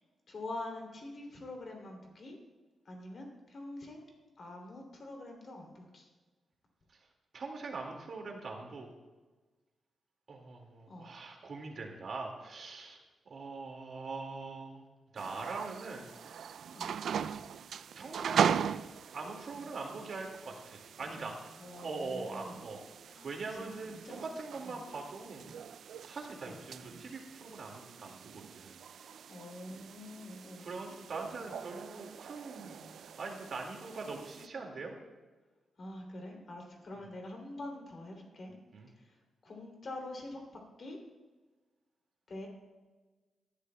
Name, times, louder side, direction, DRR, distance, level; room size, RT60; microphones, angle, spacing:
voice 1, 0.3-2.4 2.8-4.0 4.4-6.1 10.9-11.1 16.7-16.9 21.6-22.6 23.1-23.7 24.0-24.2 24.6-24.7 26.4-26.6 29.3-30.7 35.8-38.5 39.0-39.1 39.4-40.4 40.8-41.0 42.3-42.5, left 2 dB, 45° left, 1 dB, 2.9 m, -45 dB
voice 2, 7.3-8.9 10.3-13.0 13.3-14.9 15.1-16.1 18.0-18.7 19.1-21.4 21.8-25.5 25.8-28.8 30.6-35.0 37.0-37.1 38.7-38.9, right 3 dB, 55° right, 1 dB, 2.0 m, -42 dB
sound 1, 15.2-34.5, right 8 dB, 70° right, 0.3 m, -39 dB
19.0 x 11.5 x 2.3 m, 1.3 s
wide cardioid pair, 130°, 0 cm